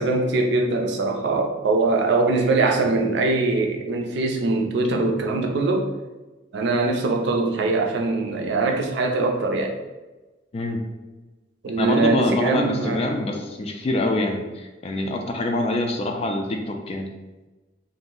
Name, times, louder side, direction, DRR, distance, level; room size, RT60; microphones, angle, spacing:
voice 1, 0.0-5.9 6.5-9.7 11.6-13.0, right 3 dB, 65° right, 2 dB, 0.4 m, -22 dB
voice 2, 11.8-17.1, left 2 dB, 35° left, 3 dB, 0.3 m, -25 dB
2.5 x 2.0 x 3.7 m, 1.2 s
head